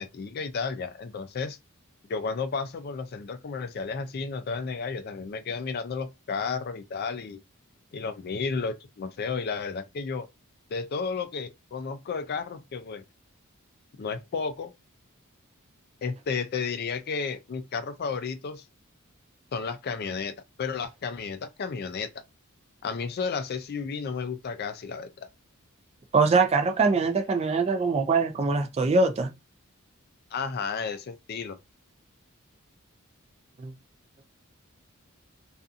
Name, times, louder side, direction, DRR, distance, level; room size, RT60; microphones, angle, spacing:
voice 1, 0.0-1.6 2.1-7.4 7.9-10.3 10.7-13.0 14.0-14.7 16.0-18.6 19.5-22.1 22.8-25.3 30.3-31.6, left 5 dB, 50° left, 0.4 m, -32 dB
voice 2, 26.1-29.3 33.6-33.7, right 4 dB, 30° right, 0.3 m, -23 dB
2.6 x 2.4 x 2.4 m
head